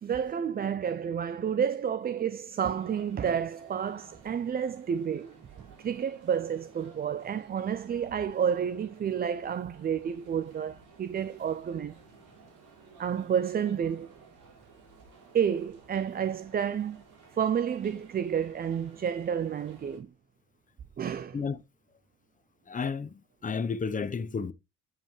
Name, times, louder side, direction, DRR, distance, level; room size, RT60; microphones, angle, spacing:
voice 1, 0.0-5.3 5.8-12.0 13.0-14.1 15.3-17.0 17.3-20.1 21.0-21.4, right 8 dB, 30° right, 0.4 m, -30 dB
subway ikebukuro station, 2.7-20.0, right 4 dB, 90° right, 3.2 m, -55 dB
voice 2, 22.7-24.5, left 5 dB, 25° left, 0.7 m, -32 dB
9.0 x 5.3 x 3.1 m
cardioid pair, 90°, 30 cm